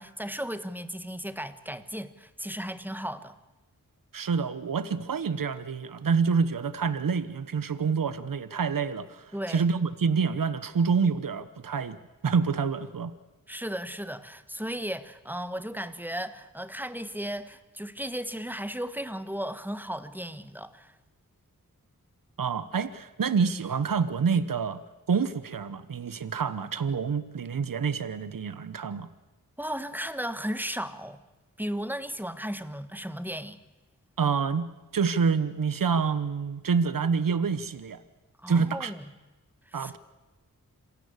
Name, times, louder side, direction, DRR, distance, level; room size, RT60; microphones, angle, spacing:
voice 1, 0.0-3.4 9.3-9.6 13.5-20.9 29.6-31.2 31.6-33.6 38.4-39.1 39.7-39.9, equal, 5° right, 1.5 m, -35 dB
voice 2, 4.1-12.0 12.2-13.1 22.4-24.8 25.1-29.1 34.2-38.0 38.5-38.9 39.7-40.0, right 5 dB, 70° right, 1.1 m, -27 dB
26.5 x 16.5 x 8.2 m
cardioid pair, 55°, 34 cm